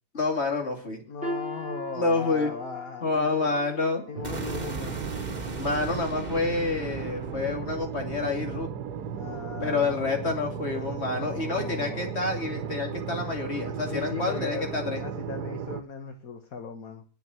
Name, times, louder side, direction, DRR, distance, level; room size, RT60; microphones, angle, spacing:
voice 1, 0.1-1.0 1.9-2.5 3.0-4.0 5.6-8.7 9.6-15.0, left 3 dB, 40° left, 2 dB, 3.0 m, -28 dB
voice 2, 1.1-3.6 4.0-5.0 9.1-10.3 11.1-12.1 13.9-14.7 15.0-17.0, left 5 dB, 60° left, 5 dB, 1.8 m, -38 dB
sound 1, 1.2-7.2 7.6-7.8 8.5-8.6, equal, 5° right, 3.3 m, -42 dB
sound 2, 4.1-15.8, right 7 dB, 75° right, 1.4 m, -35 dB
sound 3, 4.2-10.3, right 3 dB, 30° right, 1.5 m, -39 dB
10.5 x 7.2 x 9.4 m, 0.40 s
omnidirectional pair, 1.7 m